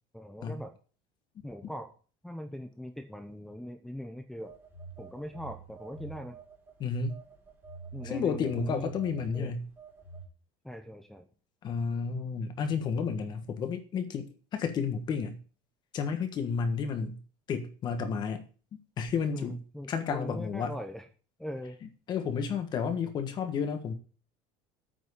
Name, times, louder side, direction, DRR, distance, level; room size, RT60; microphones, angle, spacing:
voice 1, 0.1-0.7 1.4-1.9 2.2-4.5 5.0-6.4 7.9-8.9 9.3-9.5 10.6-11.3 19.3-21.1 21.4-21.8, equal, ahead, 4 dB, 0.8 m, -41 dB
Telephone, 4.4-6.7 7.1-10.3, right 5 dB, 15° right, 2.7 m, -46 dB
voice 2, 6.8-7.1 8.0-9.6 11.6-15.4 15.9-17.2 17.5-18.5 19.0-19.6 19.9-20.7 22.1-23.9, left 6 dB, 30° left, 8 dB, 1.4 m, -31 dB
9.1 x 6.1 x 8.5 m, 0.38 s
cardioid pair, 175°, 15 cm